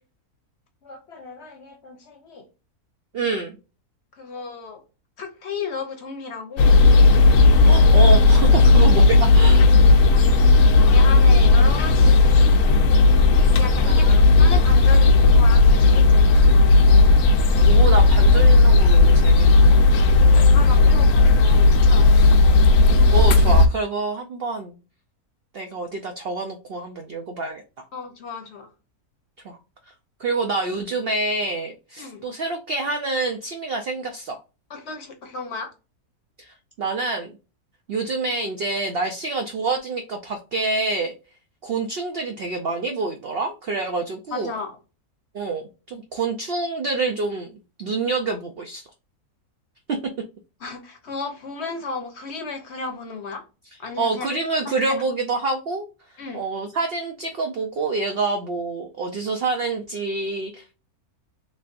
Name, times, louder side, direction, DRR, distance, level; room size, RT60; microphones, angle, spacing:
voice 1, 0.8-2.5 4.2-4.8 5.2-6.7 9.9-10.4 10.8-12.2 13.5-16.7 20.0-22.1 27.9-28.7 32.0-32.2 34.7-35.7 44.3-44.8 50.6-53.4 53.8-54.3 54.6-55.0 56.2-56.4, left 4 dB, 55° left, 0.9 m, -34 dB
voice 2, 3.1-3.6 7.6-9.7 13.9-14.5 17.6-19.7 20.0-20.1 23.1-24.8 25.5-27.6 29.4-29.6 29.9-30.0 30.2-34.4 36.4-37.3 37.9-41.1 41.6-44.5 45.3-48.9 49.9-50.0 54.0-55.8 56.3-60.7, right 3 dB, 70° right, 0.5 m, -27 dB
sound 1, 6.6-23.7, left 3 dB, 85° left, 1.2 m, -14 dB
3.3 x 3.2 x 2.5 m
omnidirectional pair, 1.6 m